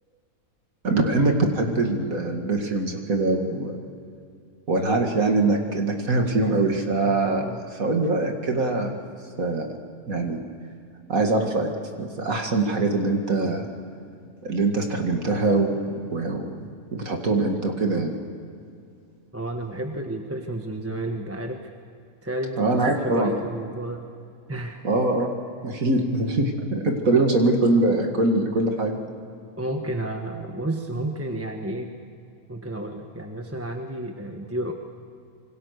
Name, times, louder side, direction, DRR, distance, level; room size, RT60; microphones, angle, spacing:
voice 1, 0.8-3.8 4.7-7.4 7.7-8.9 9.4-9.7 10.1-10.4 11.1-11.7 12.0-13.7 14.4-15.8 16.1-16.5 16.9-18.1 22.6-23.3 24.8-25.3 25.6-29.0, right 2 dB, 70° right, 3 dB, 2.5 m, -23 dB
voice 2, 19.3-21.6 22.2-24.0 24.5-24.8 25.7-25.8 27.0-27.2 29.6-31.9 32.5-34.7, right 1 dB, 10° right, 3 dB, 1.3 m, -31 dB
27.0 x 23.5 x 6.7 m, 2.4 s
omnidirectional pair, 1.5 m